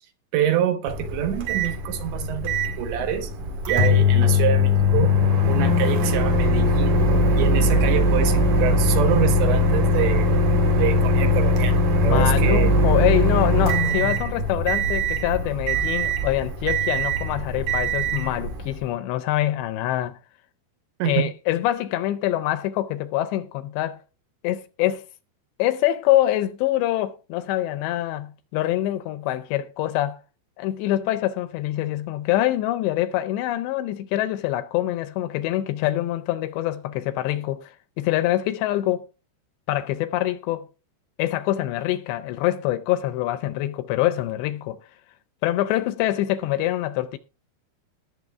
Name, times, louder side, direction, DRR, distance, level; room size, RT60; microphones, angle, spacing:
voice 1, 0.3-3.3 3.7-5.1 5.5-6.9 7.4-10.4 10.8-11.8 12.0-12.7 21.0-21.3, right 10 dB, 75° right, 3.5 m, -26 dB
Microwave oven, 0.9-18.8, left 1 dB, 55° right, 2.7 m, -21 dB
voice 2, 12.0-20.2 21.1-24.0 24.4-25.0 25.6-30.2 30.6-39.1 39.7-40.7 41.2-44.8 45.4-47.2, left 14 dB, 80° left, 2.7 m, -25 dB
19.0 x 7.2 x 3.5 m
omnidirectional pair, 5.4 m